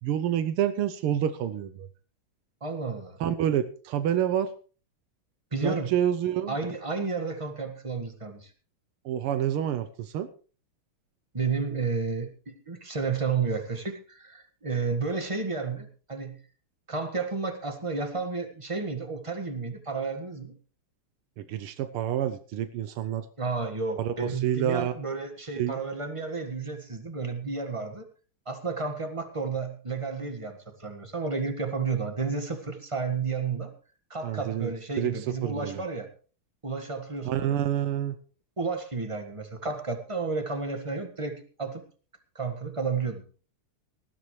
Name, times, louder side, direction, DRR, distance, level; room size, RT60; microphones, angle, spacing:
voice 1, 0.0-1.9 3.2-4.5 5.6-6.6 9.0-10.3 21.4-23.3 24.0-24.9 25.6-25.8 34.2-35.1 35.4-35.8 37.2-38.1, right 10 dB, 90° right, 11 dB, 1.7 m, -28 dB
voice 2, 2.6-3.2 5.5-5.9 6.5-8.5 11.3-16.4 16.9-20.5 23.4-28.0 28.4-33.7 34.1-36.1 36.6-37.6 38.6-41.8 42.3-43.2, right 4 dB, 15° right, 6 dB, 1.4 m, -32 dB
19.0 x 13.0 x 3.2 m, 0.38 s
omnidirectional pair, 2.3 m